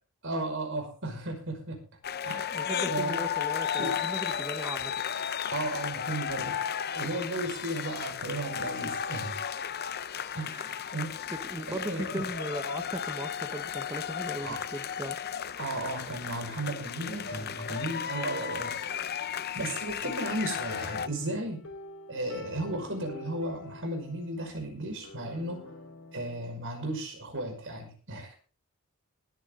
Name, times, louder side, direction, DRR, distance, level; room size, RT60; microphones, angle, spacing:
voice 1, 0.2-1.8 2.2-2.5 2.9-3.2 3.8-4.0 5.5-6.5 6.9-9.4 10.3-10.5 10.9-11.1 11.7-12.2 14.4-14.6 15.6-18.7 19.5-21.6 22.1-25.7 26.1-28.3, right 1 dB, 60° right, 3 dB, 5.6 m, -34 dB
sound 1, 2.0-21.1, left 8 dB, 50° left, 0.7 m, -34 dB
voice 2, 2.5-4.9 10.5-11.0 11.3-15.2, right 1 dB, 15° right, 8 dB, 1.0 m, -38 dB
sound 2, 15.7-26.4, left 2 dB, 75° left, 4.0 m, -48 dB
20.0 x 9.7 x 3.8 m, 0.39 s
head